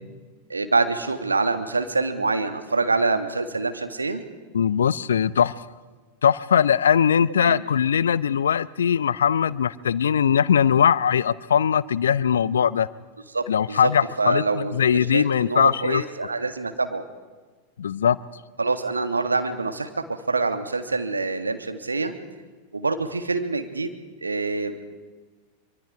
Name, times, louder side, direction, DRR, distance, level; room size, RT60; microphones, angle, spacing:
voice 1, 0.5-4.2 7.4-7.6 13.3-13.9 14.2-17.0 18.6-19.9 20.3-22.1 22.7-23.9 24.2-24.8, right 3 dB, 80° right, 7 dB, 1.7 m, -25 dB
voice 2, 4.5-5.5 6.2-12.9 13.5-16.0 17.8-18.2, left 8 dB, 65° left, 20 dB, 0.6 m, -20 dB
24.5 x 24.0 x 4.8 m, 1.4 s
figure-of-eight pair, 90°, 0 cm